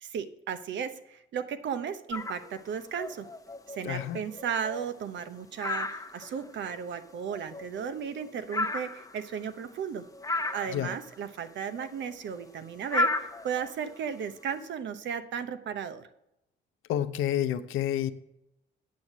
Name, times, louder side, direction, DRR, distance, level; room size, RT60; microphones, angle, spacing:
voice 1, 0.0-3.3 3.7-10.1 10.5-16.0, right 7 dB, 65° right, 11 dB, 0.9 m, -35 dB
sound 1, 2.1-2.5 2.9-5.3 5.6-6.8 7.1-9.8 10.1-11.2 11.5-14.4, left 2 dB, 15° left, 0.8 m, -34 dB
voice 2, 3.8-4.2 10.7-11.0 16.9-18.1, left 11 dB, 90° left, 10 dB, 0.6 m, -29 dB
8.4 x 6.5 x 7.3 m, 0.86 s
cardioid pair, 90°, 20 cm